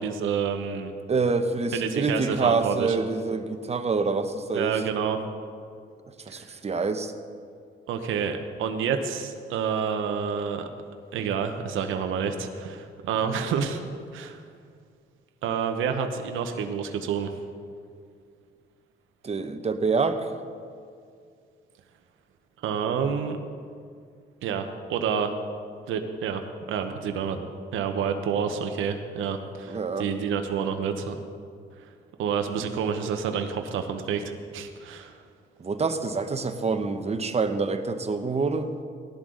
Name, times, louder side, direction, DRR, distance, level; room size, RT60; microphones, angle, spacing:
voice 1, 0.0-0.9 1.7-3.1 4.5-5.2 6.3-6.5 7.9-10.7 11.1-13.8 14.1-14.4 15.4-17.3 22.6-23.4 24.4-25.4 25.9-31.2 31.8-31.9 32.2-35.2, right 7 dB, 85° right, 6 dB, 1.0 m, -29 dB
voice 2, 1.1-4.8 6.2-7.1 19.2-20.3 29.7-30.1 35.6-38.7, right 4 dB, 30° right, 8 dB, 1.0 m, -26 dB
17.5 x 11.5 x 3.9 m, 2.2 s
cardioid pair, 90°, 20 cm